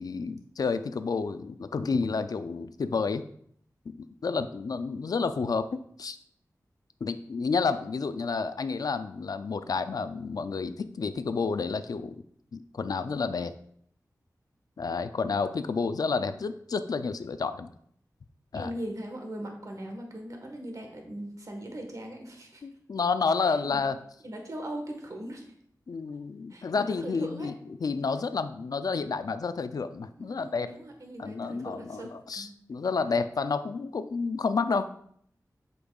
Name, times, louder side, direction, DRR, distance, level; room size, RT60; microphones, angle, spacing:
voice 1, 0.0-3.2 3.9-5.7 6.0-6.2 7.0-12.2 12.5-13.5 14.8-17.7 18.5-18.7 22.6-24.0 25.9-27.5 27.8-30.8 31.2-34.9, left 4 dB, 70° left, 11 dB, 0.4 m, -30 dB
voice 2, 18.5-22.6 23.4-23.8 24.2-25.4 26.5-27.5 30.2-32.5, right 1 dB, 55° right, 2 dB, 1.3 m, -40 dB
8.4 x 5.3 x 2.3 m, 0.65 s
wide cardioid pair, 90°, 7 cm